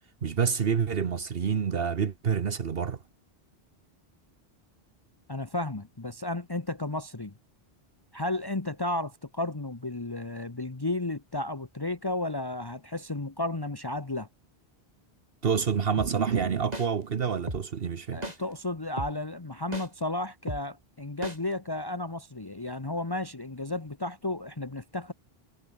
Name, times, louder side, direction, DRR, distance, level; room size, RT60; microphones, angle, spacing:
voice 1, 0.2-3.0 15.4-18.2, right 6 dB, 65° right, 1.2 m, -27 dB
voice 2, 5.3-7.3 8.1-14.3 18.1-25.1, left 2 dB, 25° left, 1.3 m, -33 dB
sound 1, 16.0-16.1 16.7-16.9 17.5-17.6 18.2-18.4 19.0-19.1 19.7-19.9 20.5-20.6 21.2-21.4, right 1 dB, 40° right, 6.0 m, -34 dB
omnidirectional pair, 1.0 m